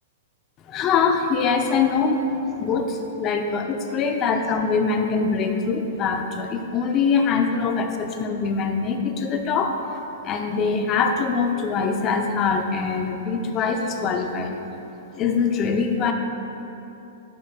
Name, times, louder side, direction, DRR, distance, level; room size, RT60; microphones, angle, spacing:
voice 1, 0.7-14.5 15.1-16.1, left 5 dB, 20° left, 5 dB, 0.4 m, -23 dB
7.9 x 3.0 x 5.9 m, 2.9 s
hypercardioid pair, 170°, 0 cm